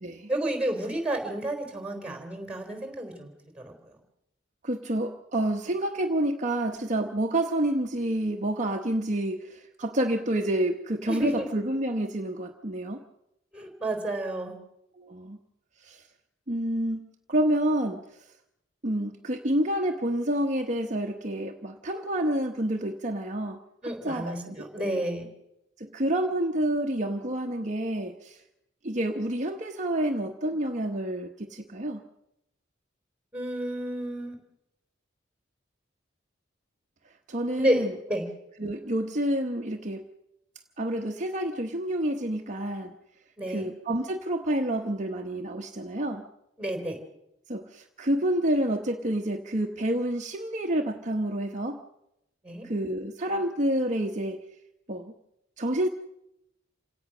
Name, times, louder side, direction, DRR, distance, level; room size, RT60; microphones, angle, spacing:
voice 1, 0.3-3.7 11.1-11.5 13.5-14.5 23.8-25.3 33.3-34.4 37.5-38.2 43.4-43.7 46.6-47.0 52.4-52.6, right 1 dB, 5° right, 5 dB, 3.9 m, -31 dB
voice 2, 4.6-13.0 14.9-15.4 15.8-16.0 16.5-18.3 18.8-25.0 25.8-28.4 28.8-32.0 37.3-37.9 38.6-40.0 40.8-43.0 43.5-46.2 47.5-51.8 52.6-54.4 54.9-55.1 55.6-55.9, right 1 dB, 40° right, 3 dB, 1.1 m, -29 dB
28.0 x 17.5 x 6.1 m, 0.86 s
head